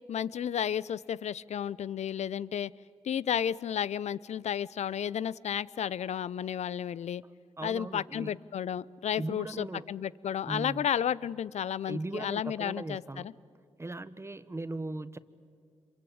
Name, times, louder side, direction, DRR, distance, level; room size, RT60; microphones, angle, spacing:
voice 1, 0.1-2.7 3.0-7.2 7.6-13.0, left 9 dB, 65° left, 20 dB, 0.6 m, -32 dB
voice 2, 7.6-8.3 9.2-9.9 10.4-10.8 11.8-13.2 13.8-15.2, right 2 dB, 20° right, 14 dB, 1.2 m, -38 dB
26.5 x 23.5 x 8.7 m, 2.2 s
supercardioid pair, 45°, 12 cm